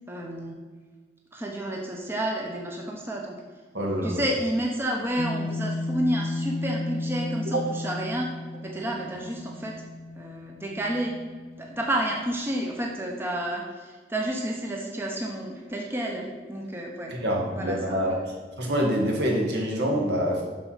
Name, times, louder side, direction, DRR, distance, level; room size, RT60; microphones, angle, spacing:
voice 1, 0.1-0.6 1.3-3.4 4.0-8.3 8.6-9.8 10.2-11.1 11.6-17.2 17.5-18.3, right 1 dB, 15° right, 0 dB, 0.9 m, -30 dB
voice 2, 3.7-4.2 7.5-7.6 17.1-18.2 18.6-20.4, equal, 70° right, -1 dB, 2.0 m, -26 dB
sound 1, 5.2-11.9, left 2 dB, 35° left, 0.7 m, -34 dB
7.7 x 6.0 x 5.7 m, 1.4 s
head